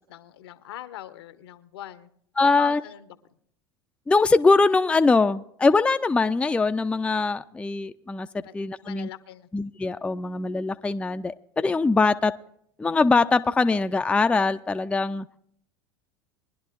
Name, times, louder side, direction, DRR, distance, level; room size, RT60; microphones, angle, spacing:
voice 1, 0.0-2.1 2.4-3.1 8.4-9.5, left 12 dB, 70° left, 13 dB, 0.8 m, -41 dB
voice 2, 2.4-2.8 4.1-8.3 8.5-9.1 9.5-12.3 12.8-15.3, left 3 dB, 10° left, 9 dB, 0.4 m, -22 dB
22.5 x 11.0 x 2.5 m, 0.68 s
hypercardioid pair, 80°, 13 cm